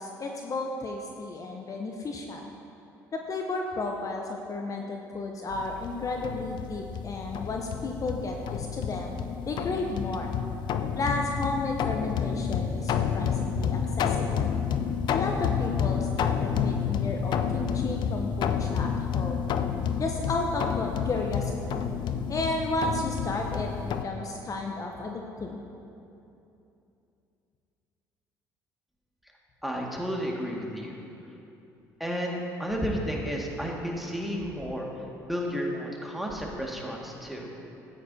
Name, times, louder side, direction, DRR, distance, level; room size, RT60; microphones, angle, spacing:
voice 1, 0.0-2.5 3.1-9.2 9.4-10.3 10.9-14.5 15.1-19.5 20.0-21.8 22.3-25.6, left 2 dB, 40° left, 2 dB, 0.8 m, -33 dB
sound 1, 5.5-24.0, left 7 dB, 60° left, 0.5 m, -30 dB
voice 2, 29.6-31.0 32.0-34.9 35.3-37.5, equal, ahead, -2 dB, 1.9 m, -32 dB
13.0 x 9.0 x 2.8 m, 2.8 s
hypercardioid pair, 65°, 9 cm